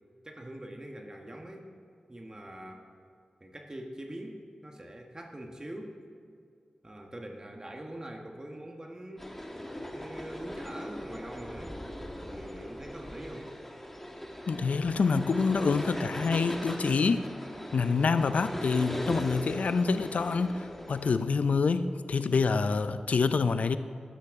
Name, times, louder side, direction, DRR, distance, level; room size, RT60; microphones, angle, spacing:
voice 1, 0.2-1.7 2.1-2.8 3.4-6.0 6.8-9.2 9.9-11.7 12.3-13.6, right 1 dB, 30° right, 2 dB, 1.3 m, -43 dB
sound 1, 9.2-21.1, equal, 10° left, 1.5 m, -39 dB
voice 2, 14.5-17.3 17.7-23.8, left 4 dB, 75° left, 12 dB, 0.5 m, -27 dB
13.0 x 11.5 x 3.6 m, 2.3 s
cardioid pair, 45°, 2 cm